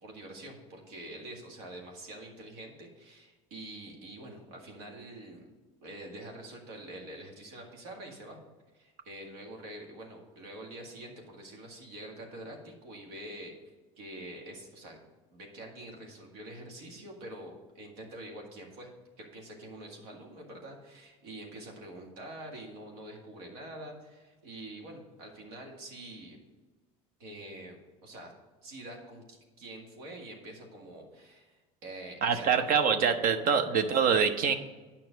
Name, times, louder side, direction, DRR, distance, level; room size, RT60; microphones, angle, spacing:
voice 1, 0.0-5.5 5.8-8.4 8.7-15.0 15.3-18.9 19.2-26.4 27.2-28.3 28.6-32.8, right 1 dB, 90° right, 1 dB, 1.9 m, -46 dB
voice 2, 32.2-34.5, right 6 dB, 55° right, 9 dB, 0.9 m, -25 dB
9.3 x 5.7 x 5.1 m, 1.3 s
supercardioid pair, 90°, 18 cm